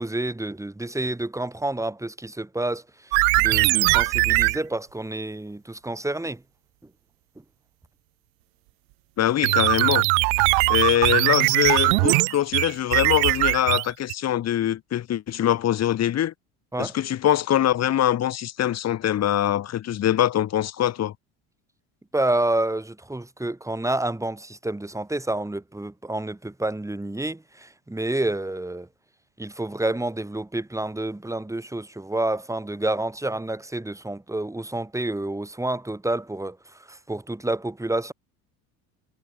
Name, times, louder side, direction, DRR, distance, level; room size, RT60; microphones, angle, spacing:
voice 1, 0.0-3.1 3.4-6.4 16.7-16.9 22.1-28.9 29.4-36.6 36.9-38.1, right 2 dB, 5° right, 5.1 m, -29 dB
sound 1, 3.1-4.6 9.4-14.1, right 40 dB or more, 75° right, 2.2 m, -20 dB
voice 2, 9.2-10.1 10.7-16.3 16.8-21.1, left 11 dB, 35° left, 1.3 m, -23 dB
supercardioid pair, 105°, 43 cm